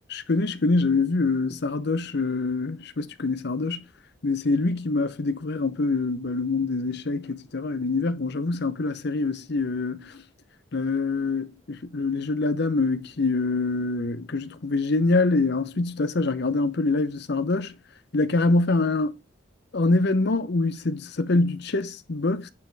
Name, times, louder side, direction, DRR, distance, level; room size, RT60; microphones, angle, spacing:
voice 1, 0.1-3.8 4.2-10.2 10.7-17.7 18.1-19.2 19.7-22.5, left 3 dB, 55° left, 0.8 m, -25 dB
8.4 x 4.3 x 3.4 m
head